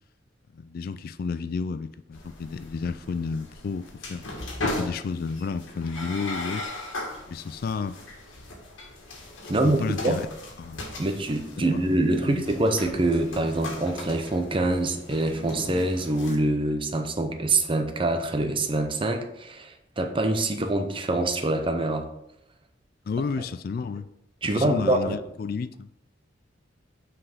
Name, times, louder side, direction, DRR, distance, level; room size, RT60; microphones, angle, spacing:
voice 1, 0.5-4.3 4.6-6.7 7.3-8.0 9.4-10.3 10.6-10.9 11.6-12.0 12.2-12.4 23.1-24.1 24.5-25.9, left 5 dB, 50° left, 0.3 m, -31 dB
sound 1, 2.1-16.4, left 1 dB, 85° left, 1.8 m, -38 dB
voice 2, 9.5-10.2 11.0-22.1 24.4-25.2, right 2 dB, 25° right, 0.7 m, -25 dB
6.0 x 4.9 x 4.9 m
head